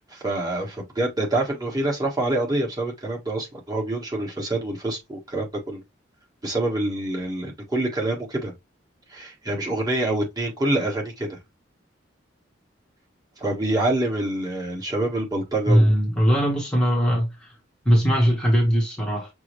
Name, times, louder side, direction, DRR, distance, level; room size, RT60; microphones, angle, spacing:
voice 1, 0.1-5.8 6.4-8.5 9.1-11.4 13.4-15.9, right 1 dB, 20° right, 1.4 m, -26 dB
voice 2, 15.7-17.5 17.8-19.3, equal, 5° left, 1.0 m, -20 dB
6.0 x 2.1 x 3.1 m
head